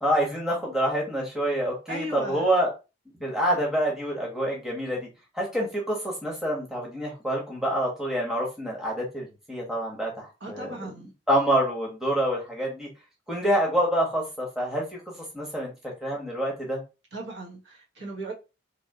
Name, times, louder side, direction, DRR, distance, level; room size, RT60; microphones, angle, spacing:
voice 1, 0.0-2.7 3.2-5.1 5.3-10.9 11.3-12.9 13.3-15.7 16.0-16.8, right 1 dB, ahead, 0.9 m, -27 dB
voice 2, 1.9-2.5 10.4-11.1 17.1-18.3, right 1 dB, 60° right, 1.1 m, -37 dB
3.4 x 2.7 x 2.7 m
head